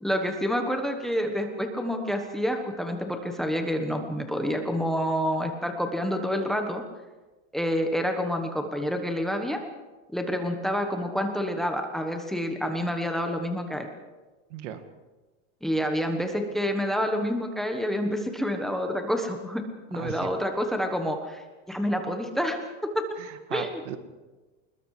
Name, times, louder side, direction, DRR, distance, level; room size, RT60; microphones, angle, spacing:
voice 1, 0.0-6.8 7.5-9.6 10.1-13.9 15.6-19.6 19.9-21.4 21.7-23.0 23.5-23.7, equal, ahead, 5 dB, 1.2 m, -28 dB
voice 2, 14.5-14.8 19.9-20.3 23.2-24.0, right 9 dB, 80° right, 9 dB, 2.2 m, -36 dB
26.5 x 21.0 x 4.9 m, 1.2 s
supercardioid pair, 175°, 36 cm